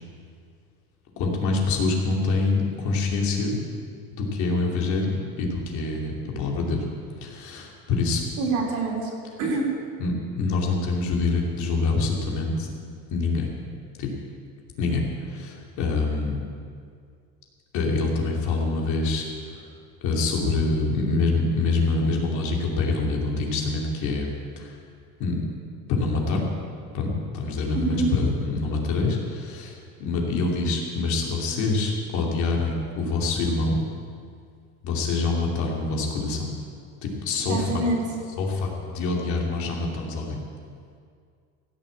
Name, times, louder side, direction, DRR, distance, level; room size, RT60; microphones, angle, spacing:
voice 1, 1.2-3.6 4.1-6.8 7.2-8.2 10.0-12.7 13.1-13.5 14.0-14.1 14.8-16.4 17.7-19.7 20.0-24.8 25.2-25.5 25.9-26.4 26.9-33.8 34.8-36.5 37.0-37.8 38.4-40.4, left 3 dB, 55° left, -1 dB, 2.8 m, -25 dB
voice 2, 8.4-9.1 9.4-9.7 27.8-28.1 37.5-38.0, right 3 dB, 60° right, -2 dB, 3.5 m, -25 dB
16.5 x 6.9 x 8.6 m, 2.2 s
cardioid pair, 160°, 34 cm